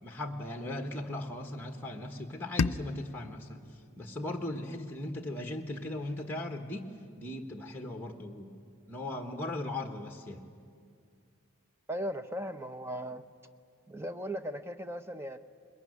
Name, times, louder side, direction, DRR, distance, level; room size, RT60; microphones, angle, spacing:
voice 1, 0.0-3.6 4.0-6.9 7.2-8.6 8.9-10.4, left 1 dB, 10° left, 3 dB, 1.3 m, -38 dB
sound 1, 2.6-5.5, left 4 dB, 85° left, 0.6 m, -36 dB
voice 2, 11.9-13.2 13.9-15.4, equal, 10° right, 9 dB, 0.7 m, -37 dB
21.5 x 21.5 x 9.5 m, 2.3 s
head